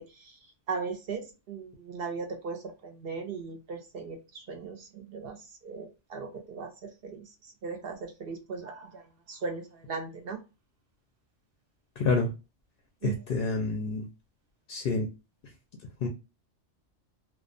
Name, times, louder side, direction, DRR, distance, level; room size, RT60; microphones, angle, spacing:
voice 1, 0.0-10.4 13.0-13.2, right 5 dB, 60° right, 0.7 m, -38 dB
voice 2, 12.0-12.3 13.0-14.1 14.7-15.1 16.0-16.1, left 3 dB, 60° left, 0.6 m, -28 dB
2.3 x 2.2 x 2.5 m
omnidirectional pair, 1.3 m